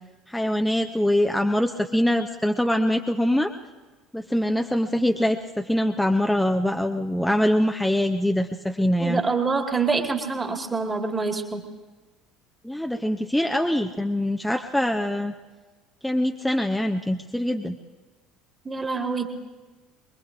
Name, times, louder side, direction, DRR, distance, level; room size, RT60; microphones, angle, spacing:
voice 1, 0.3-3.5 4.1-9.2 12.6-15.3 16.0-17.8, left 1 dB, 5° left, 4 dB, 0.7 m, -23 dB
voice 2, 9.0-11.6 18.6-19.3, right 4 dB, 20° right, 4 dB, 1.8 m, -26 dB
23.5 x 21.5 x 2.6 m, 1.3 s
figure-of-eight pair, 60°, 0 cm